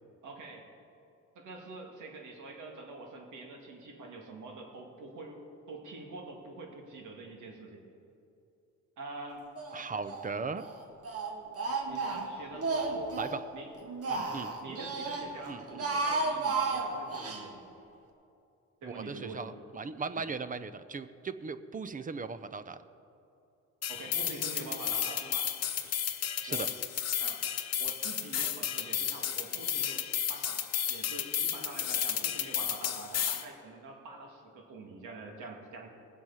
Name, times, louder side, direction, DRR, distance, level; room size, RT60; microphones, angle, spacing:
voice 1, 0.2-0.7 1.4-5.4 5.7-7.8 9.0-9.5 11.9-13.1 13.5-13.7 14.1-17.6 18.8-19.5 20.2-20.3 23.9-25.5 26.5-26.8 27.2-27.5 27.8-30.0 30.3-35.9, right 3 dB, 80° right, 1 dB, 2.3 m, -45 dB
Speech, 9.6-10.3 10.6-13.4 13.8-15.3 15.6-17.4, right 3 dB, 50° right, 1.6 m, -33 dB
voice 2, 9.7-10.7 13.2-13.4 14.3-14.5 15.5-15.7 18.8-22.8 26.4-26.7, right 4 dB, 25° right, 13 dB, 0.6 m, -38 dB
sound 1, 23.8-33.4, left 9 dB, 55° left, 1.0 m, -33 dB
19.5 x 7.8 x 5.6 m, 2.6 s
cardioid pair, 90°, 30 cm